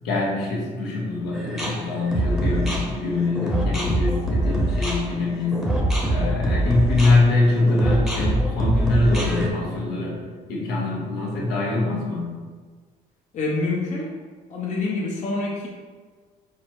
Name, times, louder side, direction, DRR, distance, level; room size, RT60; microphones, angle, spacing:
voice 1, 0.0-5.6 6.1-12.4, left 2 dB, 80° left, -3 dB, 1.2 m, -23 dB
sound 1, 1.3-9.5, right 1 dB, ahead, 0.8 m, -24 dB
voice 2, 13.3-14.1 14.5-15.7, left 3 dB, 45° left, -3 dB, 0.8 m, -26 dB
4.6 x 2.1 x 4.6 m, 1.5 s
cardioid pair, 110°, 17 cm